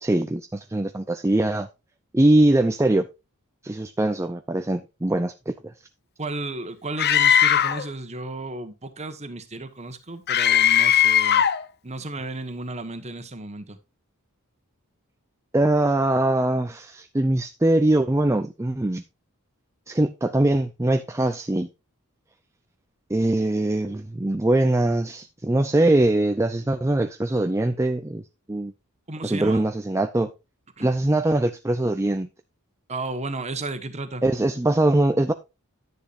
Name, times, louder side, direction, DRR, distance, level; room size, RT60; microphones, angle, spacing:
voice 1, 0.0-1.7 2.1-3.1 3.6-5.5 15.5-19.0 19.9-21.7 23.1-28.2 28.5-28.7 29.2-30.3 30.8-32.3 34.2-35.3, right 1 dB, 15° right, 0.5 m, -22 dB
voice 2, 6.2-11.4 11.8-13.8 29.1-29.6 30.8-30.9 32.9-34.2, right 2 dB, 30° right, 1.4 m, -33 dB
Screaming, 7.0-7.9 10.3-11.6, left 9 dB, 50° left, 0.7 m, -18 dB
10.5 x 10.0 x 2.6 m
head